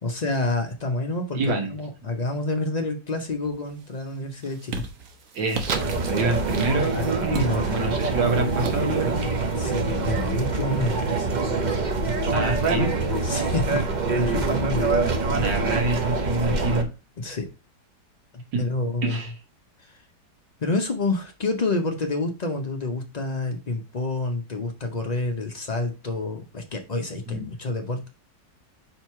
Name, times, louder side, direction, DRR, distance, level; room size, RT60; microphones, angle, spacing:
voice 1, 0.0-4.8 6.9-7.6 9.5-11.4 13.2-13.8 14.1-14.9 17.2-17.5 18.6-19.2 19.8-20.0 20.6-28.1, left 2 dB, 80° left, 0.3 m, -28 dB
voice 2, 1.3-1.7 5.3-9.3 12.3-12.9 15.3-16.9 18.5-18.6 19.0-19.3 27.3-27.4, right 2 dB, 90° right, 1.9 m, -26 dB
sound 1, 3.4-3.8 4.2-10.8, right 5 dB, 55° right, 1.1 m, -37 dB
sound 2, 5.7-16.8, right 3 dB, 40° right, 0.6 m, -25 dB
4.5 x 3.9 x 5.6 m
omnidirectional pair, 1.9 m